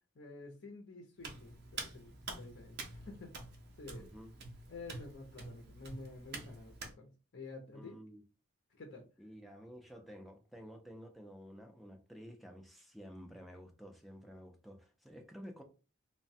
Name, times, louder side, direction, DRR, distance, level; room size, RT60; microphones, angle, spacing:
voice 1, 0.1-3.4 3.8-4.1 4.7-8.0 8.8-9.1, left 3 dB, 50° left, 0.6 m, -50 dB
Hands, 1.2-6.9, right 3 dB, 50° right, 0.6 m, -47 dB
voice 2, 3.9-4.3 7.7-8.2 9.2-15.6, equal, ahead, 0.4 m, -52 dB
3.1 x 2.1 x 2.6 m
head